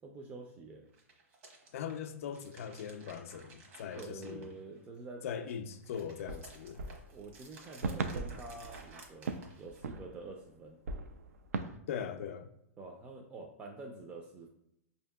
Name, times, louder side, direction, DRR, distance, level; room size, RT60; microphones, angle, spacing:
voice 1, 0.0-0.9 4.0-5.2 7.1-10.8 12.8-14.5, right 3 dB, 20° right, 0.4 m, -47 dB
sound 1, 0.8-5.0 5.4-10.0, right 3 dB, 60° right, 1.0 m, -56 dB
voice 2, 1.7-4.5 5.2-6.8 11.9-12.5, left 8 dB, 70° left, 0.4 m, -40 dB
sound 2, 5.8-5.9 6.3-10.5 10.8-11.8, right 4 dB, 90° right, 0.3 m, -39 dB
4.9 x 2.7 x 2.2 m
hypercardioid pair, 125°, 8 cm